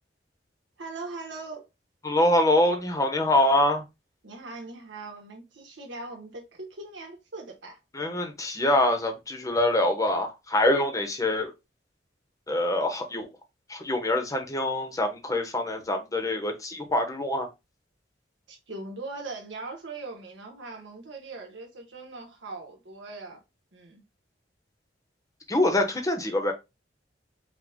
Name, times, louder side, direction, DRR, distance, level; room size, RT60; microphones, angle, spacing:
voice 1, 0.8-1.6 4.2-7.8 18.5-23.4 23.7-24.0, right 3 dB, 85° right, 1.2 m, -40 dB
voice 2, 2.0-3.8 7.9-11.5 12.5-13.3 13.7-17.5 25.5-26.5, left 1 dB, 20° left, 0.9 m, -25 dB
5.0 x 2.3 x 3.6 m
head